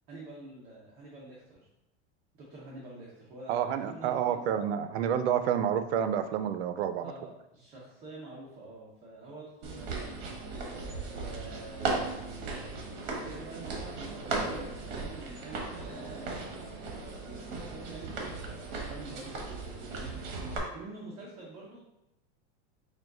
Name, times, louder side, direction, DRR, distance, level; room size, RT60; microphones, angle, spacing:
voice 1, 0.1-1.7 2.3-4.7 7.0-10.4 11.1-16.7 17.2-20.4 20.7-21.8, right 2 dB, 20° right, -5 dB, 0.5 m, -47 dB
voice 2, 3.5-7.1, right 9 dB, 85° right, 10 dB, 0.5 m, -29 dB
sound 1, 9.6-20.6, right 3 dB, 45° right, 0.9 m, -37 dB
4.8 x 2.3 x 3.7 m, 0.91 s
supercardioid pair, 180°, 32 cm